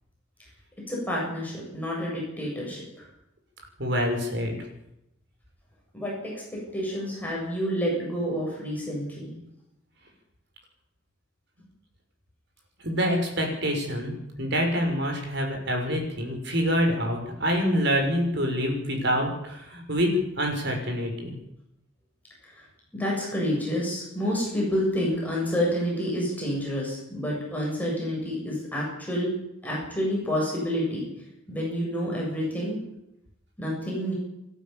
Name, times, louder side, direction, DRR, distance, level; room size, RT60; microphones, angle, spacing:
voice 1, 0.9-3.1 5.9-9.4 22.4-22.7 22.9-29.3 29.6-31.1 31.5-32.8 33.6-34.1, equal, 10° left, -4 dB, 7.9 m, -29 dB
voice 2, 3.8-4.5 12.8-14.1 14.4-20.1 20.4-21.3, equal, 60° right, 2 dB, 6.3 m, -26 dB
29.0 x 12.5 x 7.3 m, 0.84 s
head